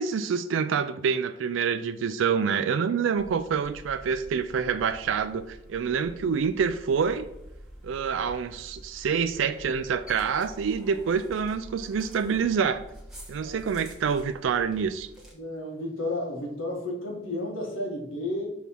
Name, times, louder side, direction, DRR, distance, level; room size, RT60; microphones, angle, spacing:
voice 1, 0.0-7.2 7.8-12.8 13.3-15.1, right 6 dB, 75° right, 10 dB, 0.4 m, -27 dB
sound 1, 3.2-15.3, right 1 dB, 5° right, 1.5 m, -47 dB
voice 2, 15.3-18.5, left 1 dB, 85° left, 0 dB, 1.6 m, -32 dB
6.2 x 3.5 x 5.6 m, 0.89 s
head